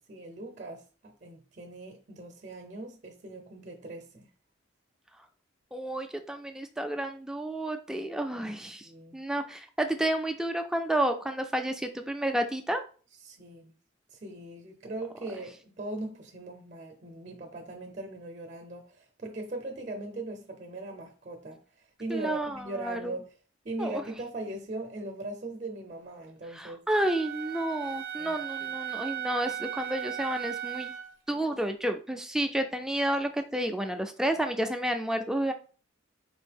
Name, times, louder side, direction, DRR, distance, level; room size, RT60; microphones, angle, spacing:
voice 1, 0.1-4.3 8.8-9.2 13.2-13.7 14.1-21.6 22.0-23.2 23.6-26.8 28.2-28.4, right 2 dB, 40° right, 0.6 m, -39 dB
voice 2, 5.7-12.8 22.1-23.2 23.8-24.0 26.5-30.9 31.3-35.5, right 1 dB, 5° right, 0.3 m, -31 dB
Wind instrument woodwind instrument, 27.0-31.1, right 10 dB, 75° right, 0.5 m, -36 dB
4.1 x 2.6 x 3.4 m
head